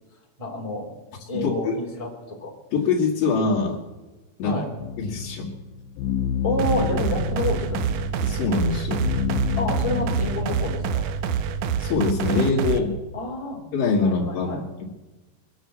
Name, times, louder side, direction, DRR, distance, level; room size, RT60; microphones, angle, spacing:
voice 1, 0.4-0.9 1.3-2.5 4.4-4.7 6.4-8.0 9.6-11.1 13.1-13.6 14.0-14.6, left 1 dB, 10° left, -1 dB, 2.5 m, -29 dB
voice 2, 1.3-1.8 2.7-3.8 4.4-4.6 5.0-5.5 8.2-9.1 11.8-12.9 13.7-14.8, left 4 dB, 70° left, -4 dB, 3.4 m, -24 dB
sound 1, 4.8-11.0, left 7 dB, 90° left, 2.7 m, -29 dB
sound 2, 6.6-12.8, right 7 dB, 75° right, 2.1 m, -26 dB
23.0 x 8.0 x 7.4 m, 1.1 s
omnidirectional pair, 4.2 m